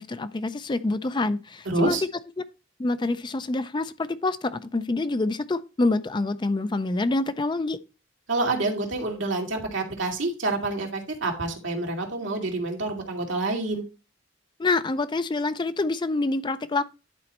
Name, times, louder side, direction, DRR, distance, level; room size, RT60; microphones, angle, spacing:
voice 1, 0.0-2.0 2.8-7.8 14.6-16.8, left 2 dB, 25° left, 0.4 m, -26 dB
voice 2, 1.7-2.0 8.3-13.8, right 2 dB, 70° right, 2.2 m, -28 dB
10.5 x 4.2 x 4.2 m
head